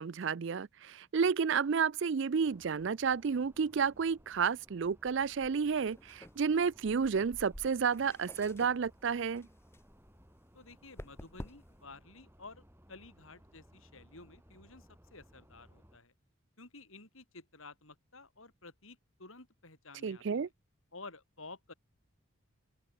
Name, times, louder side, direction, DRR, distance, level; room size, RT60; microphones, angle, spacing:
voice 1, 0.0-9.5 20.0-20.5, right 6 dB, 60° right, 0.4 m, -31 dB
sound 1, 2.4-16.0, equal, 10° right, 6.2 m, -59 dB
sound 2, 5.7-11.9, left 1 dB, 10° left, 0.9 m, -53 dB
voice 2, 10.5-16.1 16.6-20.5 20.9-21.7, left 3 dB, 75° left, 5.8 m, -52 dB
open air
head